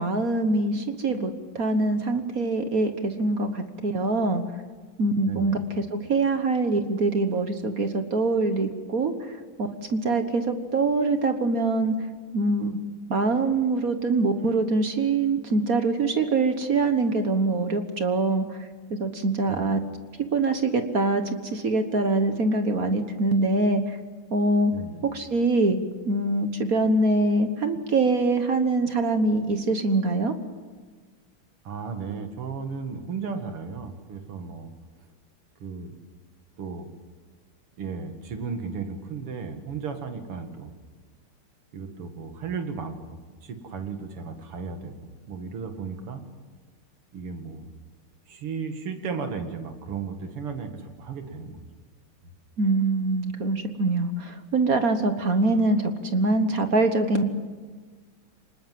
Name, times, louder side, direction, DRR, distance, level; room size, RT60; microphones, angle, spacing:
voice 1, 0.0-4.4 5.0-5.6 5.9-9.4 9.9-11.9 12.3-12.8 13.1-18.6 18.9-19.8 20.3-21.2 21.5-23.8 24.3-24.7 25.1-25.8 26.1-30.3 52.6-57.3, right 3 dB, 45° right, 8 dB, 1.5 m, -24 dB
voice 2, 5.2-5.6 19.5-19.8 24.7-25.1 31.6-34.7 35.6-36.0 36.6-36.9 37.8-40.7 41.7-43.0 43.4-46.2 47.1-47.7 48.3-51.7, right 5 dB, 85° right, 6 dB, 2.8 m, -35 dB
25.0 x 20.5 x 7.7 m, 1.5 s
omnidirectional pair, 2.4 m